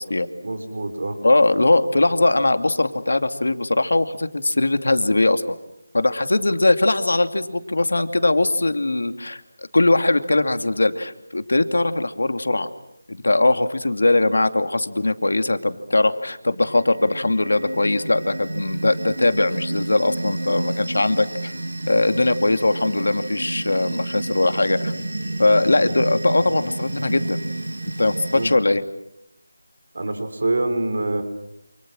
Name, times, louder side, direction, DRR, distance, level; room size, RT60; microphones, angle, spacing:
voice 1, 0.4-1.2 28.3-28.5 29.9-31.2, right 2 dB, 50° right, 8 dB, 5.0 m, -25 dB
voice 2, 1.2-5.6 5.9-9.4 9.7-12.7 13.1-21.5 21.9-24.9 25.4-27.4 28.0-28.8, left 2 dB, 70° left, 9 dB, 2.5 m, -20 dB
sound 1, 16.7-28.6, right 2 dB, 85° right, 7.9 m, -30 dB
29.0 x 29.0 x 6.3 m, 0.80 s
figure-of-eight pair, 175°, 0 cm